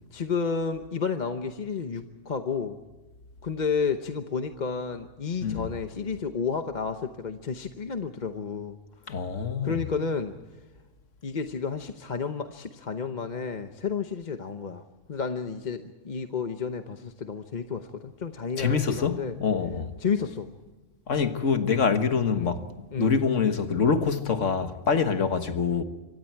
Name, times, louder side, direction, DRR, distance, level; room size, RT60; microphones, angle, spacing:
voice 1, 0.1-2.8 3.4-8.8 9.6-10.3 11.2-14.8 15.1-19.3 20.0-20.5 22.4-22.5 22.9-23.1, left 5 dB, 40° left, 1.0 m, -31 dB
voice 2, 9.1-9.8 18.6-19.9 21.1-22.6 23.0-25.8, left 5 dB, 80° left, 1.7 m, -25 dB
26.5 x 24.5 x 4.6 m
omnidirectional pair, 1.3 m